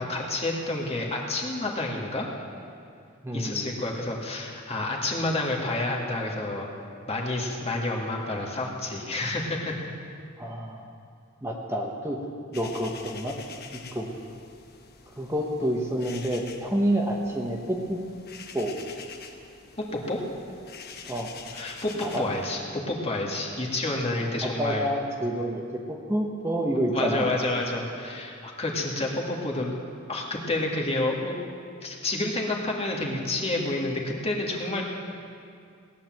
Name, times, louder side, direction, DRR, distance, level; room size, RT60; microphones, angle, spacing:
voice 1, 0.0-2.3 3.3-6.7 7.1-9.9 19.9-20.2 21.5-24.9 26.9-29.8 30.1-31.4 31.8-34.8, left 2 dB, 30° left, -1 dB, 2.1 m, -29 dB
voice 2, 3.2-3.6 10.4-10.8 11.4-12.2 12.5-13.4 13.7-14.1 15.2-18.0 18.5-18.8 21.1-21.3 22.0-22.3 24.4-27.3, equal, 15° right, 0 dB, 1.2 m, -28 dB
sound 1, 12.5-22.6, left 6 dB, 50° left, 1.2 m, -46 dB
18.0 x 10.0 x 7.6 m, 2.3 s
head